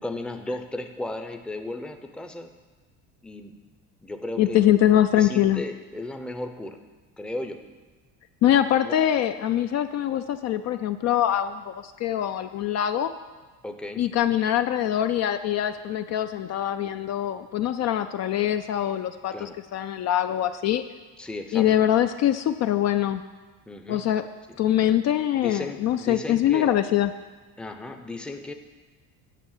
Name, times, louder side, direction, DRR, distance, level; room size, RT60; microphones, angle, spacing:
voice 1, 0.0-2.5 3.2-3.5 4.0-4.6 5.1-6.8 7.2-7.6 8.8-9.0 13.6-14.0 19.3-19.6 21.2-21.7 23.7-24.0 24.5-24.6 25.4-26.7 27.6-28.5, left 2 dB, 5° left, 6 dB, 0.6 m, -35 dB
voice 2, 4.4-5.6 8.4-13.1 14.0-20.8 21.5-23.2 23.9-24.2 24.6-27.1, left 11 dB, 50° left, 9 dB, 0.4 m, -23 dB
9.2 x 6.1 x 7.3 m, 1.3 s
cardioid pair, 130°, 36 cm